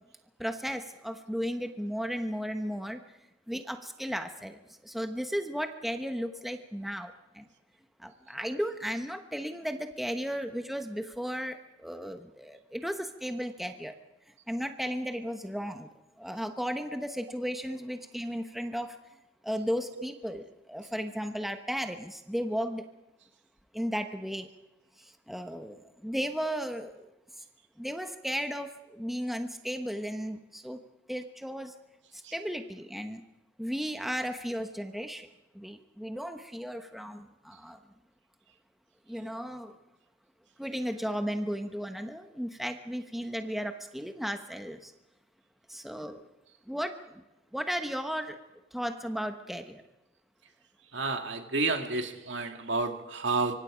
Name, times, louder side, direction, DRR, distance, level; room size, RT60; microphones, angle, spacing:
voice 1, 0.4-3.0 3.5-7.5 8.0-13.9 14.5-15.9 16.2-19.0 19.4-22.8 23.7-24.5 25.0-27.1 27.8-30.8 31.1-31.7 32.3-33.2 33.6-35.3 35.5-37.8 39.1-39.8 40.6-44.9 45.7-46.2 46.7-47.2 47.5-48.4 48.7-49.8, equal, ahead, 1.1 m, -35 dB
voice 2, 50.9-53.5, right 3 dB, 65° right, 2.3 m, -30 dB
25.0 x 24.5 x 5.1 m
head